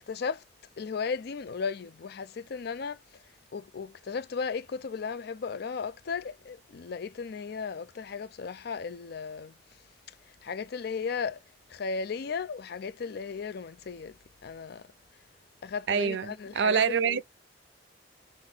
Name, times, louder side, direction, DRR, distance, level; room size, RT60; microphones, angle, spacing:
voice 1, 0.1-0.4 0.8-3.0 3.5-9.5 10.4-11.4 11.7-14.2 14.4-14.8 15.6-17.2, left 5 dB, 60° left, 0.4 m, -35 dB
voice 2, 15.9-17.2, right 6 dB, 70° right, 0.4 m, -26 dB
3.7 x 2.5 x 3.6 m
head